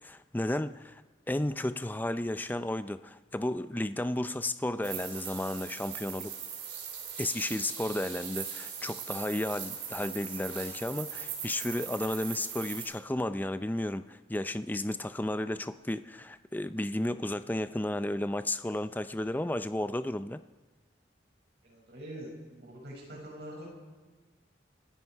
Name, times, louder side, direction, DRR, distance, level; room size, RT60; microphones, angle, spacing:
voice 1, 0.0-1.0 1.3-6.3 7.2-20.4, left 1 dB, 10° left, 12 dB, 0.4 m, -33 dB
sound 1, 4.8-12.9, right 8 dB, 80° right, 4.2 m, -40 dB
voice 2, 21.6-23.7, right 1 dB, 65° right, -3 dB, 6.4 m, -44 dB
28.5 x 10.0 x 4.6 m, 1.4 s
head